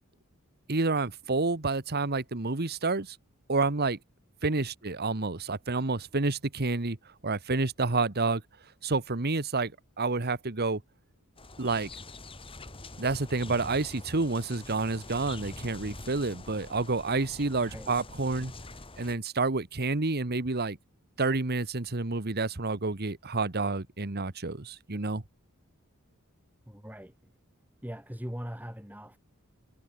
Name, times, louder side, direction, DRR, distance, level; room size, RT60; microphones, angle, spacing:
voice 1, 0.7-3.2 3.5-4.0 4.4-7.0 7.2-8.4 8.8-9.7 10.0-10.8 11.6-11.9 13.0-18.5 19.0-20.8 21.2-25.2, right 3 dB, 50° right, 1.4 m, -29 dB
sound 1, 11.4-19.2, left 2 dB, 25° left, 2.4 m, -45 dB
voice 2, 26.7-27.3 27.8-29.2, equal, 10° right, 7.3 m, -41 dB
head